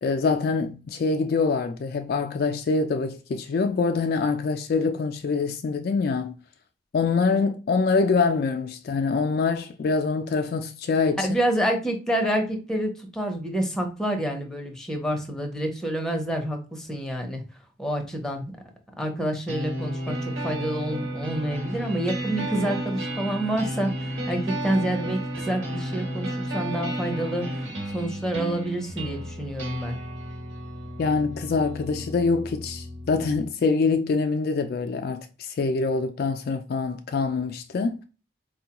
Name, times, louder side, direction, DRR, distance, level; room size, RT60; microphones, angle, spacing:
voice 1, 0.0-6.3 6.9-11.3 31.0-38.0, left 4 dB, 55° left, 0.3 m, -25 dB
voice 2, 11.2-17.4 17.8-18.5 19.0-30.0, right 1 dB, 5° left, 0.7 m, -28 dB
sound 1, 19.5-33.5, right 1 dB, 85° right, 1.4 m, -32 dB
4.3 x 2.2 x 2.9 m
head